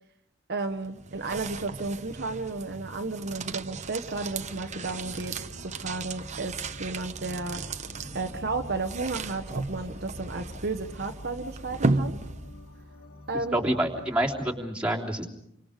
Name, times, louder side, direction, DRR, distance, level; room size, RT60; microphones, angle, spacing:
voice 1, 0.5-5.3 5.8-7.6 8.1-12.2 13.3-13.6, right 3 dB, 50° right, 5 dB, 1.2 m, -33 dB
sound 1, 0.6-12.8, right 3 dB, 35° right, 0.9 m, -35 dB
sound 2, 4.3-14.6, left 2 dB, 90° left, 2.8 m, -47 dB
voice 2, 13.5-15.3, right 1 dB, 5° right, -3 dB, 3.1 m, -27 dB
29.5 x 25.0 x 5.1 m, 0.77 s
head